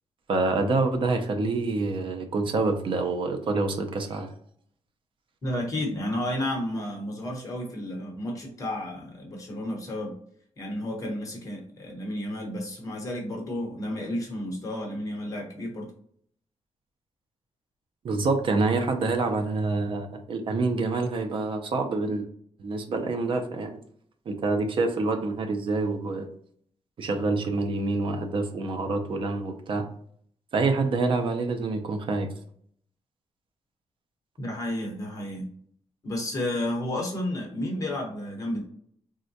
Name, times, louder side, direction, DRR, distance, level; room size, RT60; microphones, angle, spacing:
voice 1, 0.3-4.3 18.0-22.3 22.6-23.8 24.3-26.3 27.0-29.9 30.5-32.3, right 3 dB, 50° right, 5 dB, 0.4 m, -27 dB
voice 2, 5.4-10.1 10.6-15.9 34.4-35.4 36.0-38.6, left 1 dB, 30° left, -1 dB, 0.9 m, -32 dB
3.6 x 2.1 x 2.7 m, 0.63 s
wide cardioid pair, 165°, 11 cm